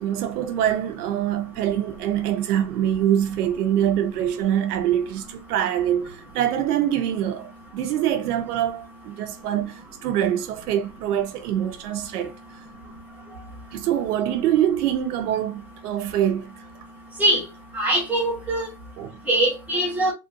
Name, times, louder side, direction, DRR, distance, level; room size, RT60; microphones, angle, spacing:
voice 1, 0.0-12.3 13.7-16.6 19.0-19.1, right 10 dB, 65° right, 0.9 m, -24 dB
voice 2, 17.7-18.7 19.3-20.1, right 1 dB, 5° right, 1.1 m, -22 dB
3.6 x 2.5 x 2.6 m
supercardioid pair, 170°, 49 cm